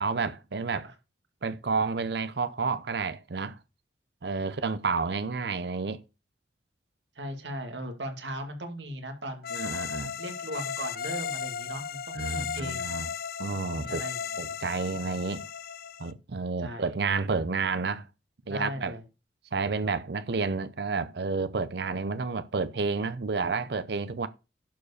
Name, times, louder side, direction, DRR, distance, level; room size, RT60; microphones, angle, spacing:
voice 1, 0.0-0.9 1.4-3.6 4.2-6.0 9.5-10.1 12.1-13.1 13.4-14.0 14.4-15.5 16.0-18.1 18.5-18.9 19.5-24.3, right 4 dB, 65° right, 0.6 m, -30 dB
voice 2, 7.2-9.7 10.2-12.9 13.7-14.2 16.6-17.0 18.4-19.0, right 1 dB, 80° right, 2.4 m, -38 dB
sound 1, 9.4-16.1, left 7 dB, 55° left, 0.7 m, -35 dB
11.0 x 4.9 x 6.6 m
head